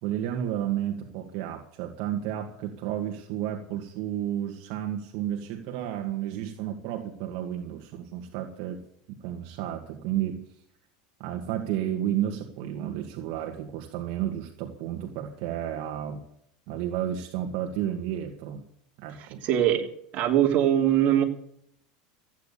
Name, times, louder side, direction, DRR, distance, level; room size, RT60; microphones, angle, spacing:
voice 1, 0.0-8.8 9.2-10.5 11.2-16.2 16.7-18.6 19.0-19.5, right 11 dB, 60° right, 3 dB, 2.1 m, -32 dB
voice 2, 19.4-19.9 20.1-21.2, right 11 dB, 45° right, 2 dB, 3.2 m, -21 dB
14.5 x 9.4 x 8.5 m, 0.68 s
supercardioid pair, 135°, 4 cm